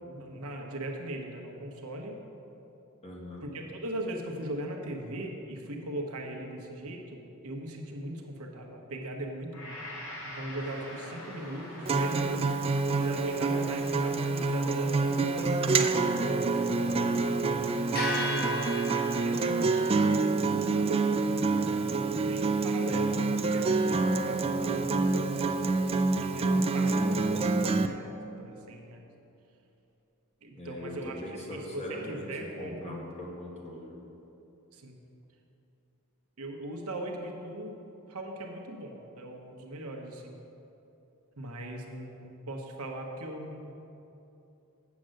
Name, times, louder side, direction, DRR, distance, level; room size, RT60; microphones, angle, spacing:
voice 1, 0.1-2.2 3.5-9.8 10.2-16.2 17.9-18.9 19.2-25.8 26.2-29.0 30.4-31.1 31.5-33.1 34.7-34.9 36.4-37.8 38.1-40.3 41.4-43.7, right 1 dB, 75° right, 1 dB, 1.1 m, -39 dB
voice 2, 3.0-3.5 16.8-17.4 30.5-33.9, left 1 dB, 30° left, -2 dB, 1.6 m, -41 dB
Gong, 9.5-17.8 18.3-18.4, left 1 dB, 65° left, 1.8 m, -48 dB
sound 1, 10.6-19.9, left 1 dB, 45° left, 1.6 m, -40 dB
Acoustic guitar, 11.9-27.9, right 3 dB, 25° right, 0.3 m, -27 dB
8.3 x 6.4 x 7.7 m, 2.9 s
head